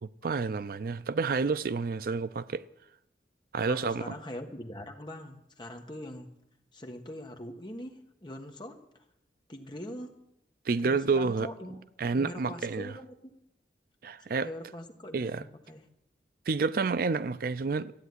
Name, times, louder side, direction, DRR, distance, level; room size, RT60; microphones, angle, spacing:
voice 1, 0.0-2.6 3.5-4.1 10.7-11.5 12.0-12.9 14.0-14.5 15.1-15.4 16.5-17.9, right 4 dB, 55° right, 0.4 m, -29 dB
voice 2, 3.7-6.3 6.7-8.8 9.5-10.1 10.8-11.9 12.1-13.4 14.4-15.8, left 1 dB, 25° left, 1.4 m, -42 dB
14.0 x 9.1 x 9.6 m
head